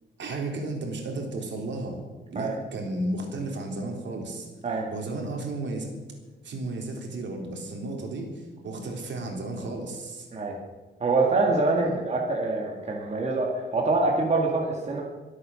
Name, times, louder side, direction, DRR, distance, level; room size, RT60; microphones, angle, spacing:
voice 1, 0.2-2.0 2.3-4.5 4.9-5.9 6.4-10.3 11.7-11.9, right 2 dB, 65° right, 1 dB, 3.7 m, -33 dB
voice 2, 11.0-15.0, right 3 dB, 35° right, -1 dB, 2.1 m, -25 dB
22.5 x 8.7 x 6.4 m, 1.3 s
wide cardioid pair, 170°, 20 cm